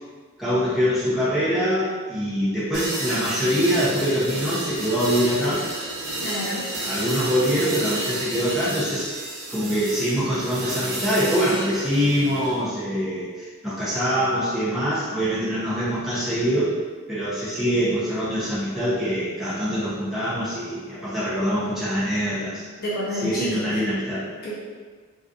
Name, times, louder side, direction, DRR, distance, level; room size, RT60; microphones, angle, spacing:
voice 1, 0.4-5.6 6.8-9.1 9.5-16.7 17.1-22.6 23.2-24.3, equal, ahead, -12 dB, 0.5 m, -24 dB
sound 1, 2.7-12.6, right 1 dB, 80° right, 0.7 m, -31 dB
voice 2, 6.2-6.7 22.8-23.7 24.4-24.5, equal, 45° left, -7 dB, 0.7 m, -29 dB
2.6 x 2.4 x 2.3 m, 1.5 s
head